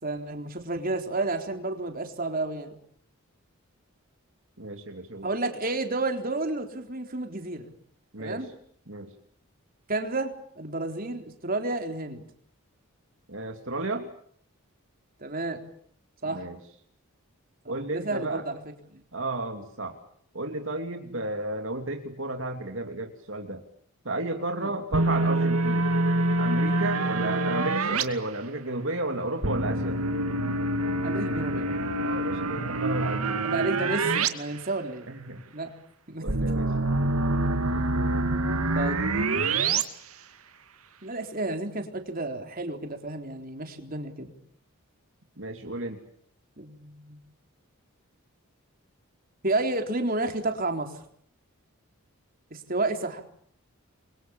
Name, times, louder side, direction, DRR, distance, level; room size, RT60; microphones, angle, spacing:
voice 1, 0.0-2.8 5.2-7.7 8.2-8.5 9.9-12.2 15.2-15.6 16.2-16.5 17.7-18.6 18.9-19.0 21.1-21.2 24.6-24.7 31.0-31.7 33.4-35.1 35.5-35.7 36.1-36.3 38.7-39.0 41.0-44.3 46.6-47.2 49.4-51.0 52.5-53.2, right 2 dB, 40° right, 5 dB, 3.9 m, -31 dB
voice 2, 4.6-5.3 8.1-8.5 8.9-9.1 13.3-14.1 16.3-16.6 17.7-18.5 19.1-20.0 20.3-23.6 24.0-25.9 26.4-30.0 32.0-33.4 35.1-35.4 36.2-36.7 45.4-46.0, right 2 dB, 60° right, 4 dB, 3.0 m, -33 dB
sound 1, 24.9-28.0 29.4-34.3 34.6-34.7 36.3-39.8, right 2 dB, 80° right, 2.4 m, -26 dB
29.5 x 24.5 x 7.2 m, 0.62 s
head